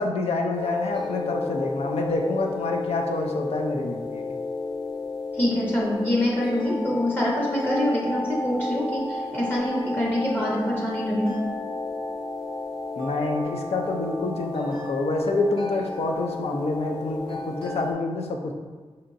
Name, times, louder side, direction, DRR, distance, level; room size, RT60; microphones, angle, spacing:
voice 1, 0.0-4.2 13.0-18.5, left 2 dB, 85° left, 2 dB, 0.5 m, -27 dB
sound 1, 0.5-17.9, left 3 dB, 65° left, 1.1 m, -32 dB
voice 2, 5.3-11.3, left 1 dB, 20° left, -4 dB, 0.6 m, -25 dB
5.3 x 2.8 x 2.5 m, 1.4 s
wide cardioid pair, 140°, 10 cm